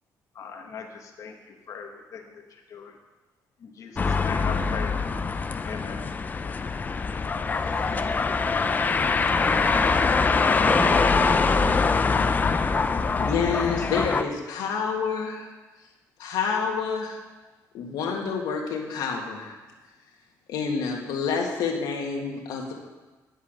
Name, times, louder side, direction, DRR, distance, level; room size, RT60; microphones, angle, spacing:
voice 1, 0.3-3.0 3.6-4.9 5.6-6.0, left 6 dB, 55° left, 3 dB, 1.2 m, -39 dB
sound 1, 4.0-14.2, left 4 dB, 25° left, 0.5 m, -23 dB
voice 2, 7.6-8.0 9.4-10.2 10.6-11.8, left 1 dB, 5° left, 0 dB, 1.3 m, -33 dB
voice 3, 13.2-15.5 16.2-17.2 17.7-19.6 20.5-22.7, left 5 dB, 85° left, 0 dB, 1.7 m, -28 dB
11.0 x 5.6 x 6.6 m, 1.2 s
cardioid pair, 125°, 7 cm